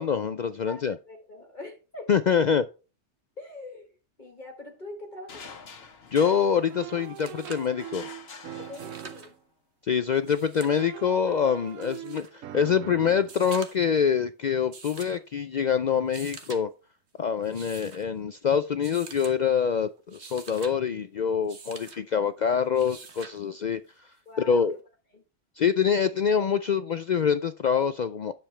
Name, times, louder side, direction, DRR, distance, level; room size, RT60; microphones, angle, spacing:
voice 1, 0.0-1.0 2.1-2.7 6.1-8.1 9.8-16.7 17.2-24.1 24.5-24.8 25.6-28.3, left 7 dB, 80° left, 0.4 m, -25 dB
voice 2, 0.7-2.1 3.4-3.9 4.2-5.4 8.6-9.3 24.2-24.7 25.1-25.2, left 2 dB, 35° left, 1.6 m, -43 dB
sound 1, 5.3-7.3 7.8-9.4, left 5 dB, 55° left, 1.2 m, -46 dB
sound 2, 6.7-6.8 7.0-7.7 8.6-9.3 10.2-10.8 11.8-12.3 13.2-13.9 14.7-15.2 16.0-16.6 17.4-18.0 18.8-19.4 20.0-20.7 21.5-22.0 22.7-23.4 24.8-24.9, right 5 dB, 60° right, 1.4 m, -45 dB
sound 3, 6.7-9.4 10.7-13.3, right 12 dB, 80° right, 1.0 m, -42 dB
10.0 x 7.0 x 3.3 m
omnidirectional pair, 1.3 m